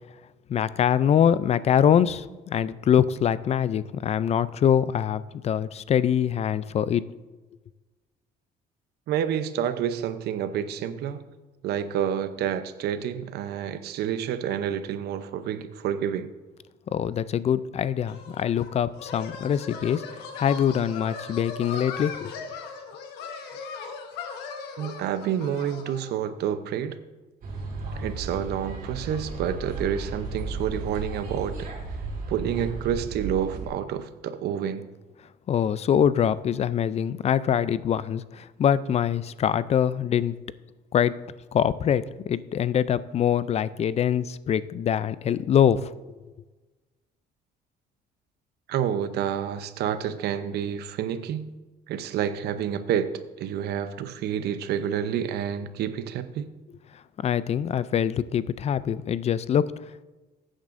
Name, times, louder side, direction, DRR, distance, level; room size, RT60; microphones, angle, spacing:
voice 1, 0.5-7.0 16.9-22.3 35.5-40.3 40.9-41.2 41.5-45.9 57.2-59.7, left 9 dB, 40° left, 17 dB, 0.4 m, -24 dB
voice 2, 9.1-11.2 11.6-16.3 24.8-27.0 27.9-31.6 32.3-34.9 48.7-51.5 51.9-53.1 53.4-56.5, right 9 dB, 75° right, 11 dB, 0.7 m, -29 dB
sound 1, 18.1-26.2, left 5 dB, 85° left, 1.3 m, -39 dB
sound 2, 27.4-33.7, right 3 dB, 55° right, 3.6 m, -34 dB
15.0 x 8.9 x 2.6 m, 1.2 s
cardioid pair, 110°, 17 cm